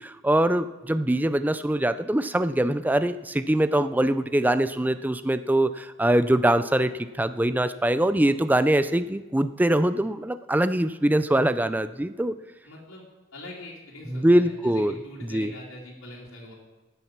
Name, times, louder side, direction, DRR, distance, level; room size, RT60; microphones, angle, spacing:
voice 1, 0.2-6.9 7.2-12.3 14.1-14.9 15.3-15.5, right 1 dB, 10° right, 12 dB, 0.4 m, -23 dB
voice 2, 12.6-13.0 13.3-16.5, left 1 dB, 70° left, -7 dB, 2.8 m, -43 dB
13.5 x 9.0 x 5.9 m, 1.2 s
head